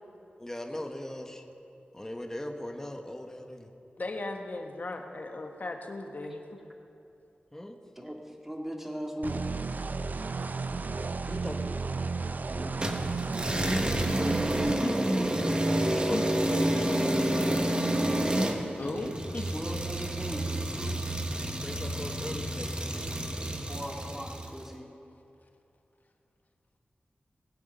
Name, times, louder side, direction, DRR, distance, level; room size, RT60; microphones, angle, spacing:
voice 1, 0.4-1.4 1.9-3.7 7.5-7.8 11.3-11.8 14.0-14.4 15.9-17.6 21.5-23.1, left 1 dB, 15° left, 4 dB, 1.2 m, -39 dB
voice 2, 4.0-6.4 14.1-14.2 14.8-15.0 16.1-16.2 18.8-19.5, left 2 dB, 55° left, 3 dB, 1.5 m, -37 dB
voice 3, 8.0-9.5 12.5-12.8 19.0-21.0 23.7-24.9, equal, 10° right, 1 dB, 2.0 m, -39 dB
sound 1, 9.2-14.7, right 4 dB, 55° right, 0.5 m, -33 dB
sound 2, 12.8-24.6, right 1 dB, 30° right, 1.3 m, -29 dB
20.0 x 8.4 x 5.6 m, 2.7 s
wide cardioid pair, 60°, 4 cm